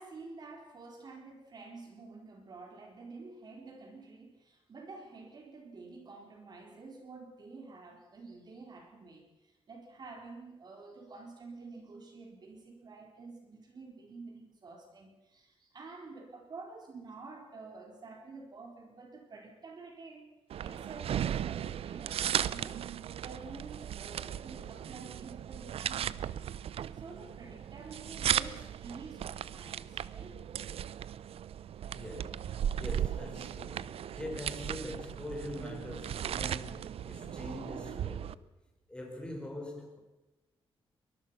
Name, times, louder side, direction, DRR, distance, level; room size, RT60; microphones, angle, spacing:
voice 1, 0.0-20.3 20.6-26.5 26.9-30.4, right 3 dB, 45° right, 4.3 m, -49 dB
sound 1, 20.5-38.3, right 10 dB, 75° right, 0.6 m, -36 dB
voice 2, 31.8-38.4 38.9-40.0, left 1 dB, 10° left, 4.9 m, -43 dB
23.5 x 21.5 x 5.8 m
wide cardioid pair, 160°, 10 cm